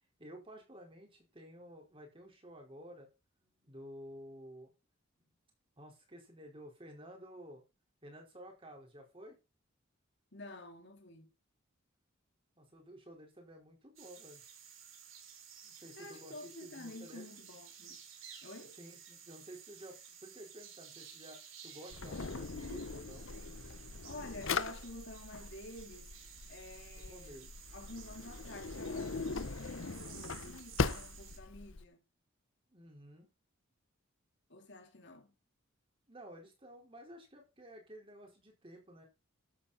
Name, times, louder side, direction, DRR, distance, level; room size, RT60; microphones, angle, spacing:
voice 1, 0.2-3.1 3.4-4.7 5.2-5.3 5.8-7.6 8.0-9.4 12.6-14.4 15.6-17.3 18.8-23.3 26.9-27.4 32.7-33.3 36.1-39.0, equal, 25° right, 4.7 m, -52 dB
voice 2, 10.3-11.3 16.0-18.0 18.4-18.8 24.0-26.1 26.5-32.0 34.5-35.3, left 2 dB, 60° left, 2.8 m, -50 dB
sound 1, 14.0-31.4, right 8 dB, 75° right, 4.1 m, -54 dB
Drawer open or close, 21.9-31.8, left 4 dB, 75° left, 0.9 m, -40 dB
13.0 x 8.8 x 4.3 m
head